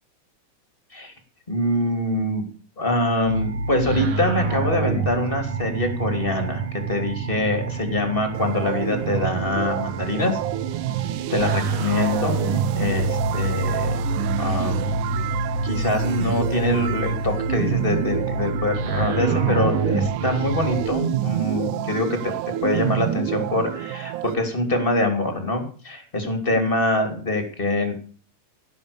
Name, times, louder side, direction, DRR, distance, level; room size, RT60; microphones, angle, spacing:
voice 1, 1.5-2.4 2.8-10.4 11.3-12.3 12.7-14.0 14.4-15.0 15.6-22.3 22.6-27.9, left 1 dB, 15° left, 6 dB, 2.8 m, -24 dB
sound 1, 3.3-20.9, right 3 dB, 45° right, 2.1 m, -27 dB
sound 2, 8.3-24.3, right 14 dB, 80° right, 2.2 m, -29 dB
17.0 x 7.2 x 6.9 m, 0.41 s
omnidirectional pair, 3.7 m